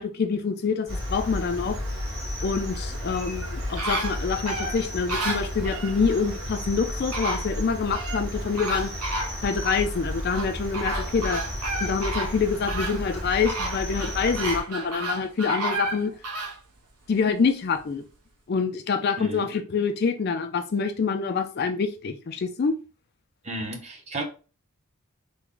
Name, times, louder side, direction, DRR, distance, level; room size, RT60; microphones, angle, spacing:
voice 1, 0.0-1.8 2.4-8.9 9.4-11.4 11.8-16.1 17.1-18.0 18.5-22.7, left 5 dB, 45° left, 0.4 m, -26 dB
Cricket, 0.9-14.6, left 1 dB, 70° right, 1.7 m, -33 dB
sound 1, 3.1-6.0 6.7-6.8 7.1-8.2 8.6-9.8 10.3-16.6 17.1-17.2, right 2 dB, 85° right, 0.8 m, -32 dB
voice 2, 23.4-24.2, right 2 dB, 30° right, 0.7 m, -33 dB
3.3 x 2.1 x 3.7 m
head